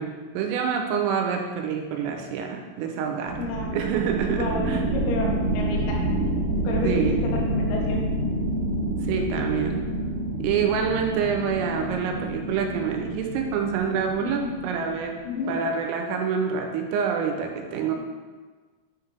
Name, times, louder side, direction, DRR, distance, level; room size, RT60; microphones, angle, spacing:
voice 1, 0.0-3.4 3.7-4.8 6.8-7.2 9.0-9.8 10.4-15.2 15.5-17.9, right 6 dB, 85° right, 3 dB, 3.3 m, -27 dB
sound 1, 3.3-15.5, right 1 dB, 70° right, 2.6 m, -28 dB
voice 2, 3.4-3.8 4.2-6.1 6.7-8.1 14.2-14.6 15.2-15.6, left 3 dB, 85° left, -2 dB, 4.1 m, -31 dB
10.0 x 5.8 x 3.4 m, 1.4 s
omnidirectional pair, 6.0 m